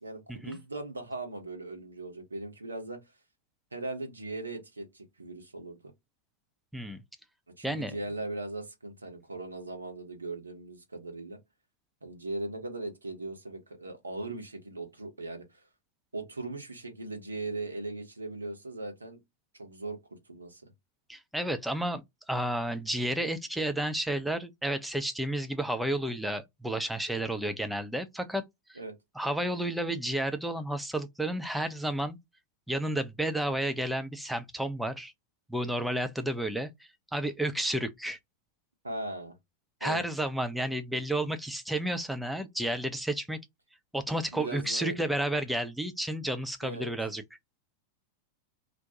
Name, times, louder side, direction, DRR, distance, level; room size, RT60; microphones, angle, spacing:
voice 1, 0.0-3.0 3.7-5.8 7.6-11.4 12.0-15.6 16.1-19.2 19.5-20.7 28.8-28.9 38.8-39.3 39.8-40.0 44.3-45.0 46.6-46.9, right 2 dB, 80° right, 0.9 m, -39 dB
voice 2, 21.1-28.4 28.7-28.8 29.2-32.2 32.7-35.1 35.5-36.7 37.1-38.2 39.8-43.4 43.9-47.2, right 1 dB, 5° right, 0.5 m, -31 dB
2.5 x 2.1 x 2.7 m
figure-of-eight pair, 90°, 0 cm